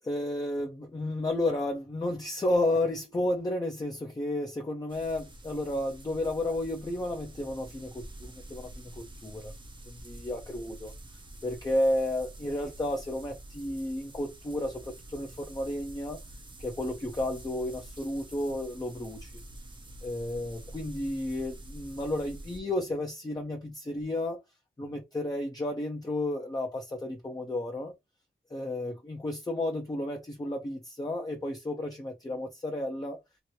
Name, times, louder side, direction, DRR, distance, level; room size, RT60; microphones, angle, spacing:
voice 1, 0.0-9.5 9.9-10.9 11.4-16.2 16.6-19.3 20.0-24.4 24.8-27.9 28.5-33.2, left 1 dB, 20° left, 0.6 m, -32 dB
sound 1, 4.9-22.6, right 1 dB, 25° right, 0.6 m, -47 dB
2.9 x 2.6 x 2.9 m
wide cardioid pair, 100°, 20 cm